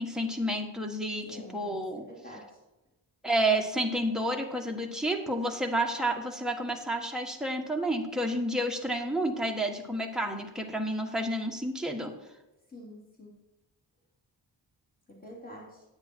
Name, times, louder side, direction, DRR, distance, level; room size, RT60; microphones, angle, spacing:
voice 1, 0.0-2.1 3.2-12.1, right 1 dB, ahead, 1 dB, 1.5 m, -30 dB
voice 2, 1.2-1.8 2.1-2.6 12.7-13.3 15.1-15.8, equal, 20° left, -3 dB, 3.3 m, -47 dB
9.7 x 8.9 x 4.6 m, 1.0 s
wide cardioid pair, 75°, 46 cm